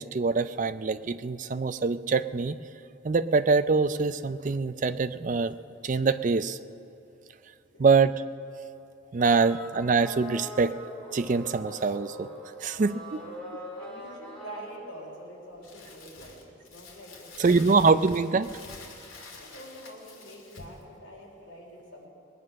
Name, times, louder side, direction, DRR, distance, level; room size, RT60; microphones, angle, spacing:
voice 1, 0.0-2.6 3.0-5.5 5.8-6.6 7.8-8.1 9.1-10.7 11.1-12.3 12.6-13.2 17.4-18.5, right 4 dB, 40° right, 13 dB, 0.4 m, -24 dB
sound 1, 9.2-14.7, equal, 5° left, 3.2 m, -42 dB
voice 2, 12.9-17.6 19.4-22.1, equal, 65° left, -4 dB, 4.3 m, -46 dB
Crumpling crinkling, 15.6-20.8, left 3 dB, 85° left, 2.3 m, -48 dB
20.0 x 9.4 x 6.3 m, 2.8 s
head